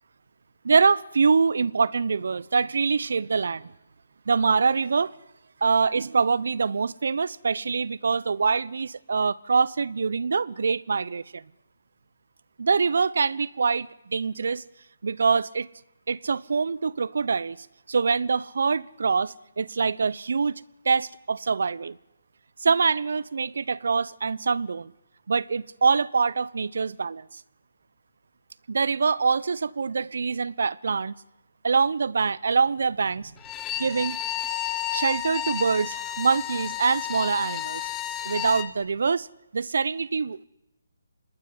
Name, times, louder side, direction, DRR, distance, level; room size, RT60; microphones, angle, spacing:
voice 1, 0.6-3.7 4.3-5.1 5.6-11.4 12.6-14.6 15.0-15.7 16.1-17.6 17.9-22.0 22.6-24.9 25.3-27.4 28.7-31.1 31.6-33.3 33.8-34.2 34.9-37.9 38.2-39.3 39.5-40.4, right 5 dB, 65° right, 1.0 m, -24 dB
Bowed string instrument, 33.4-38.7, left 12 dB, 15° left, 1.5 m, -32 dB
26.0 x 20.0 x 9.9 m
figure-of-eight pair, 155°, 0 cm